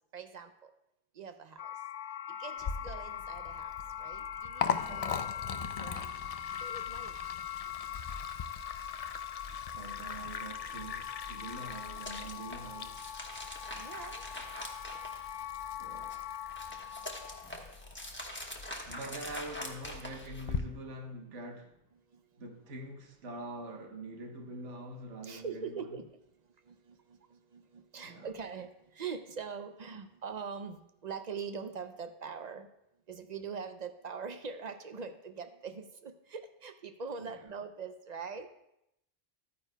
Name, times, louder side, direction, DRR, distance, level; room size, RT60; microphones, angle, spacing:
voice 1, 0.1-0.7 1.2-1.7 2.4-3.7 4.0-5.4 5.8-6.1 6.6-7.2 13.7-14.2 25.2-26.2 26.7-32.7 33.1-38.5, right 5 dB, 50° right, 0.5 m, -43 dB
sound 1, 1.6-17.5, left 10 dB, 85° left, 0.9 m, -42 dB
Liquid, 2.6-20.6, left 6 dB, 65° left, 0.3 m, -42 dB
voice 2, 9.7-13.0 15.8-16.2 16.7-16.8 18.8-21.8 22.4-26.0 28.0-28.3 37.2-37.4, right 1 dB, 85° right, 1.4 m, -44 dB
sound 2, 11.5-15.6 16.0-20.6, left 1 dB, 10° left, 1.0 m, -44 dB
13.0 x 9.4 x 2.2 m
omnidirectional pair, 1.2 m